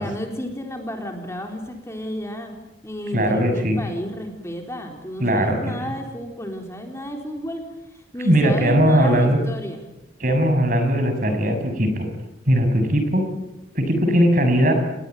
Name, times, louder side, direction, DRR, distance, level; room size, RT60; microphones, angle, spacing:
voice 1, 0.0-2.5 2.8-7.6 7.9-9.8, equal, 15° left, 3 dB, 4.0 m, -32 dB
voice 2, 3.1-3.8 5.2-5.7 8.2-9.4 10.2-12.1 12.5-13.2 13.7-14.7, equal, 45° right, 6 dB, 6.3 m, -19 dB
30.0 x 20.5 x 9.1 m, 0.97 s
head